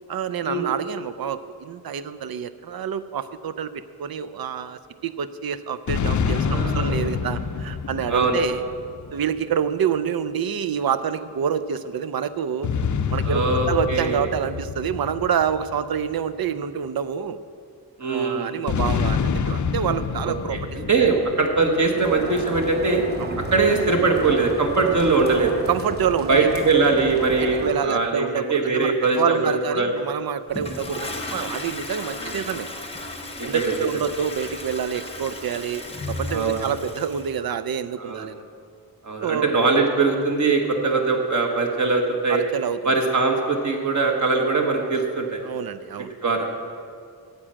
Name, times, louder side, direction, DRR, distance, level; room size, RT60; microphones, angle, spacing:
voice 1, 0.1-3.7 4.0-8.6 9.1-12.7 13.1-17.4 18.0-19.2 19.5-20.6 23.2-23.3 25.7-26.5 27.4-32.7 33.4-38.4 39.2-39.5 42.3-42.9 45.4-46.1, right 8 dB, 65° right, 13 dB, 0.5 m, -27 dB
sound 1, 5.9-9.5 12.6-16.3 18.7-22.1, left 6 dB, 50° left, 0.5 m, -27 dB
voice 2, 6.5-7.0 8.1-8.4 13.2-14.3 18.0-18.6 20.2-20.6 20.9-23.0 23.4-25.5 26.3-29.9 32.2-32.4 33.4-34.0 36.3-36.7 38.0-38.3 39.0-42.4 42.8-45.4 46.2-46.5, right 3 dB, 45° right, 2 dB, 1.3 m, -22 dB
sound 2, 22.0-27.7, right 1 dB, 25° right, 1.0 m, -33 dB
Toilet flush, 30.5-37.3, left 2 dB, 15° left, 0.8 m, -34 dB
9.8 x 7.4 x 8.8 m, 2.2 s
wide cardioid pair, 175°, 39 cm